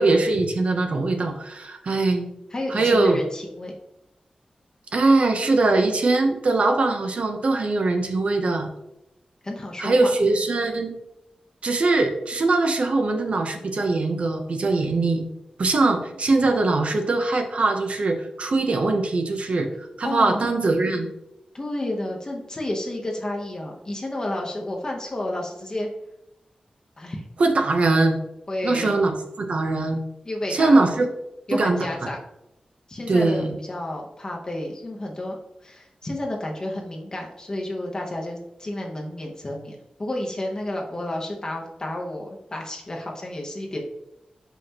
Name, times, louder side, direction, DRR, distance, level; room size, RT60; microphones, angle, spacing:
voice 1, 0.0-2.3 2.7-3.2 4.9-8.7 9.8-11.0 11.6-15.3 15.6-21.1 27.4-28.2 28.6-30.0 30.5-31.1 31.5-32.1 33.1-33.6, right 3 dB, 60° right, 5 dB, 0.7 m, -21 dB
voice 2, 2.5-3.8 9.4-10.1 20.0-20.5 21.5-25.9 27.0-27.2 28.5-28.9 30.2-30.8 31.5-32.2 32.9-43.8, left 1 dB, 30° left, 0 dB, 0.9 m, -31 dB
5.9 x 5.5 x 2.9 m, 0.85 s
wide cardioid pair, 135°, 2 cm